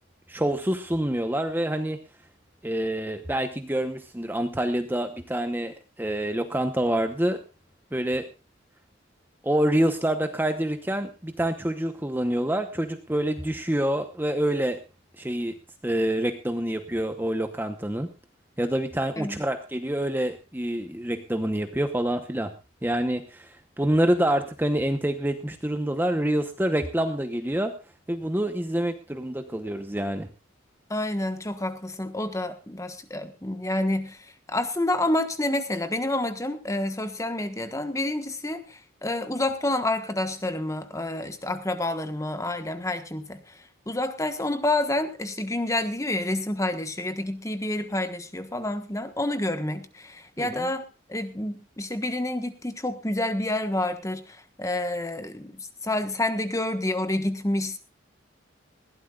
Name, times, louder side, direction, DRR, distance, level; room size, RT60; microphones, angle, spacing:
voice 1, 0.3-2.0 2.6-7.4 7.9-8.3 9.4-14.8 15.2-15.5 15.8-18.1 18.6-22.5 22.8-27.7 28.1-30.3 50.4-50.7, right 1 dB, 10° right, 7 dB, 0.9 m, -27 dB
voice 2, 30.9-43.4 43.9-50.8 51.1-57.8, left 1 dB, 15° left, 9 dB, 1.3 m, -28 dB
20.5 x 15.5 x 2.4 m, 0.30 s
head